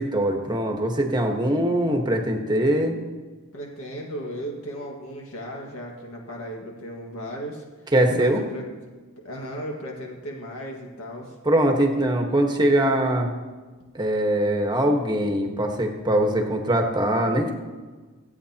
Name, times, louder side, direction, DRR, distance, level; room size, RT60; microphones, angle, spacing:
voice 1, 0.0-2.9 7.9-8.4 11.4-13.3 13.9-17.5, right 1 dB, 20° right, 3 dB, 1.4 m, -22 dB
voice 2, 3.5-7.6 8.2-8.6 9.2-11.3, equal, 70° left, 0 dB, 2.0 m, -36 dB
25.5 x 8.8 x 2.9 m, 1.3 s
head